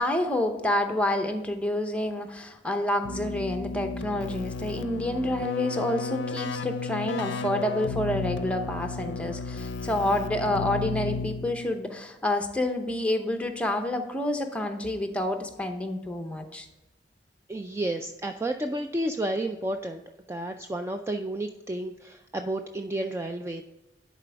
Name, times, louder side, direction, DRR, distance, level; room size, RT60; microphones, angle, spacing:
voice 1, 0.0-16.7, left 1 dB, 5° left, 5 dB, 0.7 m, -28 dB
Keyboard (musical), 3.0-11.7, left 4 dB, 75° left, 0.5 m, -33 dB
voice 2, 17.5-20.0 20.3-23.6, right 1 dB, 15° right, 5 dB, 0.3 m, -31 dB
10.5 x 4.2 x 3.4 m, 1.0 s
head